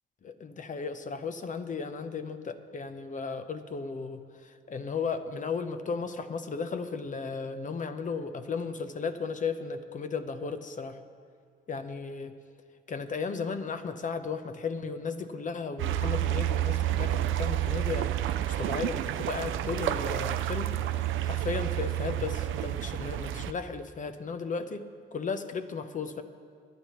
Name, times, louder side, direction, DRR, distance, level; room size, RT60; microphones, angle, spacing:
voice 1, 0.2-11.0 11.7-12.3 12.9-26.2, left 5 dB, 40° left, 9 dB, 0.9 m, -35 dB
sound 1, 15.8-23.5, right 12 dB, 80° right, 0.6 m, -30 dB
24.0 x 10.0 x 3.1 m, 2.2 s
cardioid pair, 90°, 20 cm